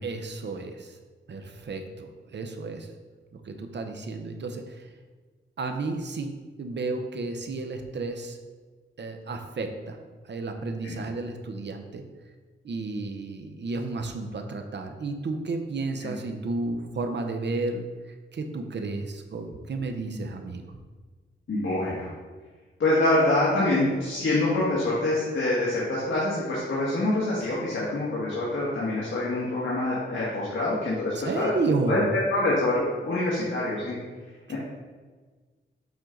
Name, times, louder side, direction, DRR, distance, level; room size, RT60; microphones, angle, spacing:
voice 1, 0.0-1.0 1.3-2.9 3.3-4.9 5.6-8.4 9.0-10.0 10.2-12.0 12.6-20.7 31.1-32.0 34.5-34.6, right 3 dB, 60° right, 5 dB, 0.8 m, -32 dB
voice 2, 21.5-22.1 22.8-31.5 31.9-32.0 32.3-34.0 34.5-34.6, left 2 dB, 70° left, -7 dB, 1.7 m, -25 dB
7.3 x 4.5 x 3.9 m, 1.4 s
wide cardioid pair, 100°, 21 cm